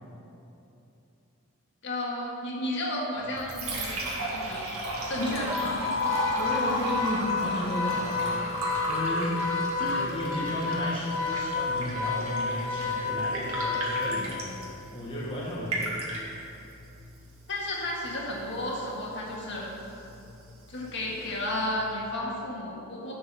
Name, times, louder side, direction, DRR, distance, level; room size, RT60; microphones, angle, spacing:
voice 1, 1.8-4.7 5.1-5.8 9.8-10.1 10.7-10.8 17.5-19.7 20.7-23.1, left 1 dB, 55° left, -3 dB, 1.8 m, -33 dB
Liquid, 3.2-22.2, right 1 dB, 80° right, 2.0 m, -36 dB
Organ, 5.3-14.5, left 5 dB, 75° left, 1.3 m, -31 dB
voice 2, 6.3-8.5 8.9-14.4 14.9-15.9, equal, 25° left, -5 dB, 1.1 m, -33 dB
10.5 x 5.2 x 6.7 m, 2.9 s
head